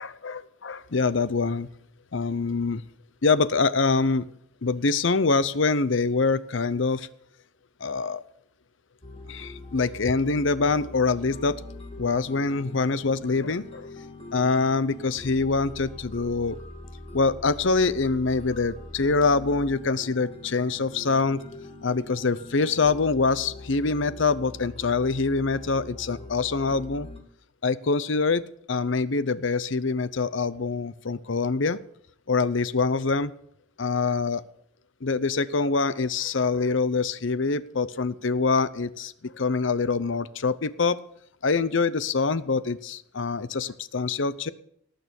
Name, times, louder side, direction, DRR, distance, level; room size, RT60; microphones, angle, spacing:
voice 1, 0.0-1.7 2.1-2.8 3.2-4.3 4.6-7.1 7.8-8.2 9.3-11.6 12.0-13.9 14.3-16.6 17.1-21.4 21.8-27.1 27.6-28.4 28.7-31.8 32.3-33.3 33.8-34.4 35.0-41.0 41.4-44.5, left 4 dB, 65° left, 16 dB, 0.7 m, -25 dB
sound 1, 9.0-27.2, left 2 dB, 30° left, 2.2 m, -42 dB
18.5 x 6.7 x 7.0 m, 0.68 s
head